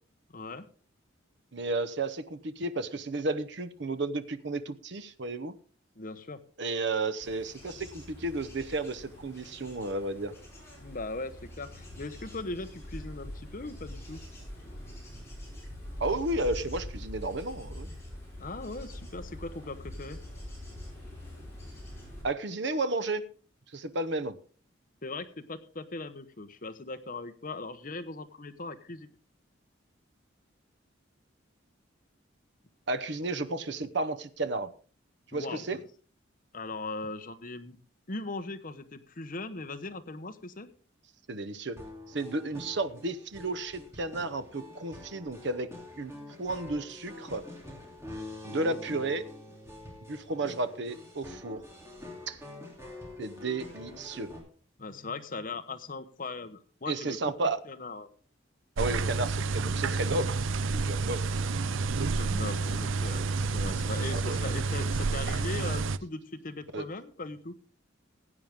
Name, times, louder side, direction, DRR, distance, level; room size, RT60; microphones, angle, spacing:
voice 1, 0.3-0.7 6.0-6.4 10.8-14.2 18.4-20.2 25.0-29.1 35.3-35.8 36.5-37.8 38.1-40.7 48.5-48.8 54.8-57.2 57.6-58.1 62.0-63.3 63.5-67.6, left 3 dB, 45° left, 9 dB, 1.0 m, -39 dB
voice 2, 1.5-5.5 6.6-10.3 16.0-17.9 22.2-23.3 23.7-24.4 32.9-34.7 35.3-35.8 41.3-41.8 42.1-45.7 46.0-46.1 46.4-47.4 48.4-49.2 50.1-51.6 52.3-52.4 53.2-54.3 56.9-57.6 58.8-60.4 60.7-61.3 64.1-64.4 66.7-66.8, right 2 dB, 60° right, 12 dB, 0.9 m, -32 dB
Bird / Insect / Wind, 7.2-22.2, left 1 dB, 15° left, 6.0 m, -44 dB
sound 1, 41.8-54.4, left 2 dB, 15° right, 3.0 m, -46 dB
sound 2, 58.8-66.0, right 4 dB, 80° right, 0.5 m, -29 dB
16.0 x 8.9 x 3.6 m, 0.40 s
head